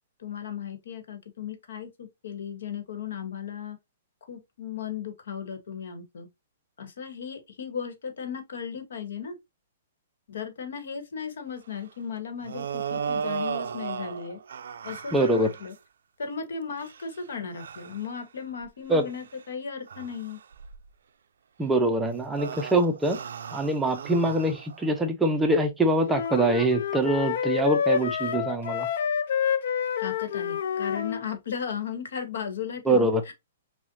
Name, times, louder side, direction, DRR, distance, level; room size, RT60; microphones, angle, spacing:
voice 1, 0.2-3.8 4.3-6.3 6.8-9.4 10.3-14.4 14.8-15.7 16.2-20.4 30.0-33.3, left 7 dB, 75° left, 1.1 m, -36 dB
sound 1, 12.4-15.7 16.7-17.1 17.6-18.0 18.6-18.7 19.1-19.3 19.9-20.9 22.0-25.0, right 6 dB, 80° right, 0.4 m, -35 dB
voice 2, 15.1-15.5 18.9-19.0 21.6-23.2 23.5-28.9 32.9-33.2, right 2 dB, 5° right, 0.4 m, -24 dB
sound 2, 26.0-31.2, left 7 dB, 60° left, 0.4 m, -28 dB
5.6 x 2.1 x 2.6 m
hypercardioid pair, 170°, 0 cm